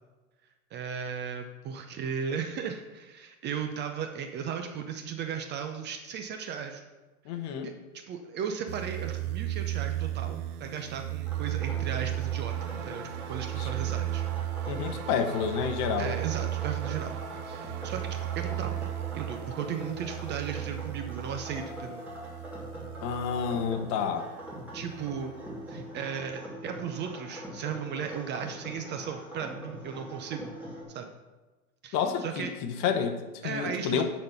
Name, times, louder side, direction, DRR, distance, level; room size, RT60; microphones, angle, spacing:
voice 1, 0.7-6.8 7.3-7.4 7.6-14.2 16.0-17.1 17.4-18.7 19.1-22.0 24.7-25.3 25.7-30.5 30.9-31.1 31.8-32.5 33.4-34.0, right 7 dB, 25° right, 5 dB, 0.5 m, -36 dB
voice 2, 7.3-7.7 13.6-13.7 14.7-16.1 23.0-24.3 31.9-34.0, left 7 dB, 40° left, 6 dB, 1.0 m, -29 dB
sound 1, 8.7-23.9 24.5-25.5, right 14 dB, 85° right, 0.5 m, -35 dB
sound 2, 11.3-30.8, equal, 5° right, 2.7 m, -43 dB
sound 3, 12.5-19.9, right 8 dB, 50° right, 0.9 m, -45 dB
10.5 x 4.3 x 5.6 m, 1.2 s
hypercardioid pair, 115°, 43 cm